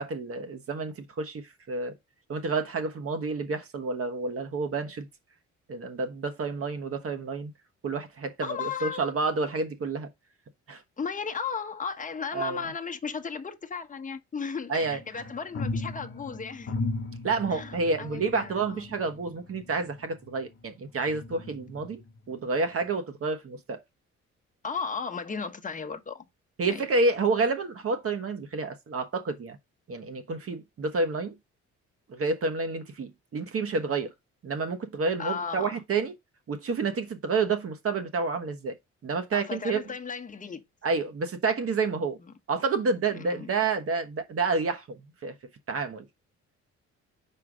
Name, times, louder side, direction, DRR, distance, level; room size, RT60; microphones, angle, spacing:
voice 1, 0.0-1.9 2.3-5.1 5.7-7.5 7.8-10.1 10.7-10.8 12.3-12.6 14.7-15.0 17.2-22.0 22.3-23.8 26.6-29.6 29.9-31.3 32.1-34.1 34.4-36.1 36.5-38.8 39.0-39.8 40.8-42.2 42.5-45.4 45.7-46.1, right 4 dB, 50° right, 1.2 m, -29 dB
voice 2, 8.4-9.2 11.0-16.9 17.5-18.9 24.6-26.2 26.7-26.8 35.2-35.8 39.3-40.6 42.2-42.3 43.1-43.5, left 5 dB, 25° left, 1.1 m, -35 dB
sound 1, 14.8-20.6 21.1-22.2 22.7-22.8, left 3 dB, 40° left, 1.3 m, -37 dB
4.8 x 4.6 x 5.0 m
cardioid pair, 90°, 30 cm